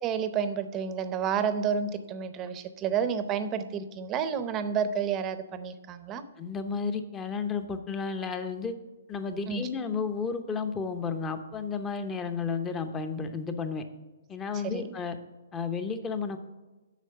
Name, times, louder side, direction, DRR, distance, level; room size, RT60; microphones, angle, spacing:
voice 1, 0.0-6.2 9.5-9.6 14.5-14.8, right 7 dB, 20° right, 11 dB, 0.7 m, -30 dB
voice 2, 6.4-8.7 9.1-13.8 14.3-15.2 15.5-16.4, left 5 dB, 15° left, 9 dB, 0.8 m, -32 dB
8.3 x 6.3 x 7.6 m, 1.2 s
hypercardioid pair, 155°, 0 cm